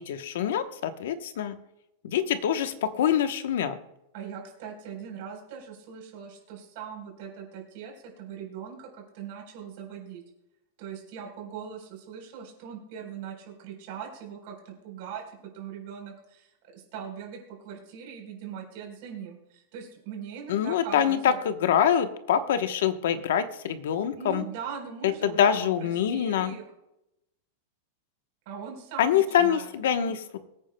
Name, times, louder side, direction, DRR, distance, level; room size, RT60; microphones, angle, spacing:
voice 1, 0.0-1.6 2.0-3.8 20.5-24.4 25.0-26.6 29.0-30.4, left 9 dB, 70° left, 9 dB, 1.0 m, -25 dB
voice 2, 4.1-10.2 10.8-15.2 15.5-21.4 24.2-26.6 28.5-29.7, right 7 dB, 45° right, 1 dB, 3.9 m, -40 dB
23.5 x 9.0 x 2.2 m, 0.87 s
supercardioid pair, 180°, 0 cm